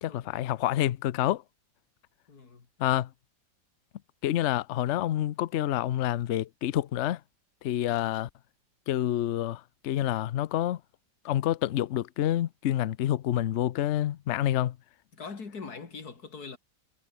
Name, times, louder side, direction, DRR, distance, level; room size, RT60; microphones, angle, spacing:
voice 1, 0.0-1.4 2.8-3.1 4.2-7.2 7.6-8.3 8.9-10.8 11.2-14.8, left 12 dB, 85° left, 0.6 m, -28 dB
voice 2, 2.3-3.0 15.1-16.6, left 4 dB, 55° left, 3.1 m, -42 dB
omnidirectional pair, 2.0 m